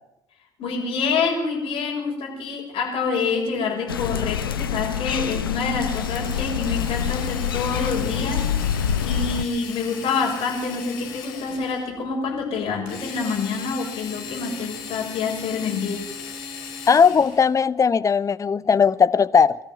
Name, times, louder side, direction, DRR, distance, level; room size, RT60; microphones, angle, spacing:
voice 1, 0.6-8.5 9.0-16.1, left 4 dB, 55° left, 6.8 m, -27 dB
sound 1, 3.9-9.4, left 8 dB, 90° left, 1.0 m, -26 dB
Drill, 5.8-11.9 12.9-17.5, left 6 dB, 70° left, 5.5 m, -38 dB
voice 2, 16.9-19.6, left 6 dB, 30° left, 0.9 m, -18 dB
23.0 x 13.5 x 9.4 m
hypercardioid pair, 65°, 12 cm